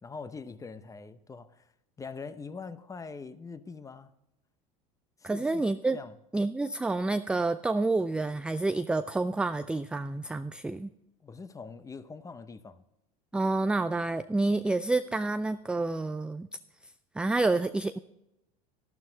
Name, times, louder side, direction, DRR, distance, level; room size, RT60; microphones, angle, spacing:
voice 1, 0.0-1.7 2.0-4.1 5.2-5.6 5.9-6.1 11.2-12.8, left 4 dB, 15° left, 13 dB, 0.8 m, -43 dB
voice 2, 5.2-6.0 6.3-10.9 13.3-16.5 17.2-18.0, right 2 dB, 5° right, 11 dB, 0.3 m, -28 dB
12.0 x 12.0 x 4.0 m, 0.86 s
supercardioid pair, 105°, 20 cm